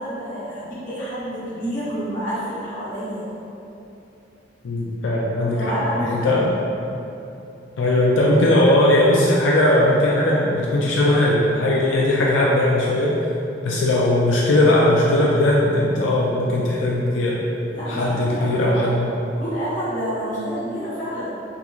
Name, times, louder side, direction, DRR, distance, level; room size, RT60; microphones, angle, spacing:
voice 1, 0.0-3.2 5.4-6.4 17.7-19.1 19.4-21.3, equal, 45° left, -12 dB, 1.3 m, -29 dB
voice 2, 4.6-6.5 7.8-13.2 13.6-17.4 17.9-19.1, left 1 dB, 90° left, -4 dB, 0.4 m, -19 dB
3.6 x 3.0 x 2.3 m, 2.9 s
head